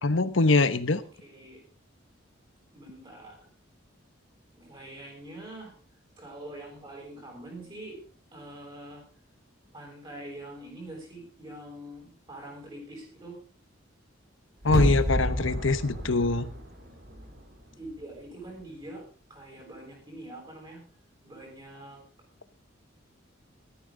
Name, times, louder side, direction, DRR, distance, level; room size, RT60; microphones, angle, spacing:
voice 1, 0.0-1.0 14.6-16.5, left 3 dB, 75° left, 13 dB, 1.1 m, -23 dB
voice 2, 1.2-1.6 2.7-3.5 4.5-5.7 6.2-8.0 8.3-9.0 9.7-13.4 17.8-19.0 19.3-20.8 21.2-22.0, right 1 dB, 25° right, 0 dB, 7.4 m, -44 dB
sound 1, 14.6-17.6 17.9-18.0, equal, 50° right, 3.0 m, -30 dB
15.0 x 13.5 x 3.9 m, 0.38 s
head